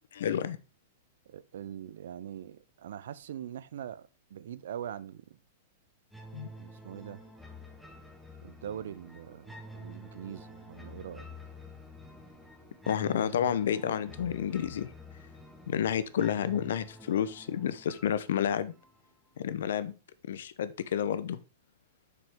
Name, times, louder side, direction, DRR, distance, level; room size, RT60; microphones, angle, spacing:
voice 1, 0.1-0.6 6.3-6.5 12.9-14.9 15.7-18.7 19.4-19.9 20.3-21.4, left 9 dB, 80° left, 0.7 m, -30 dB
voice 2, 1.3-5.2 6.6-7.2 8.4-11.3, right 10 dB, 75° right, 0.5 m, -42 dB
sound 1, 6.1-19.1, left 1 dB, ahead, 1.5 m, -49 dB
7.8 x 6.0 x 3.6 m
hypercardioid pair, 135°, 0 cm